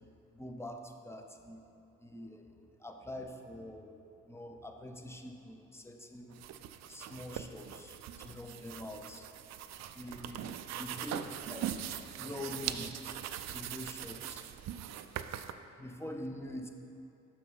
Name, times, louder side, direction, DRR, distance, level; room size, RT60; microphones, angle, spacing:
voice 1, 0.3-1.6 2.0-2.5 2.8-3.9 4.3-6.4 6.9-9.3 9.9-11.8 12.1-12.9 13.5-14.5 15.0-15.1 15.8-16.7, left 1 dB, 10° left, 5 dB, 0.7 m, -45 dB
sound 1, 6.3-15.5, right 10 dB, 60° right, 0.4 m, -41 dB
6.9 x 5.9 x 5.6 m, 2.8 s
cardioid pair, 90°, 30 cm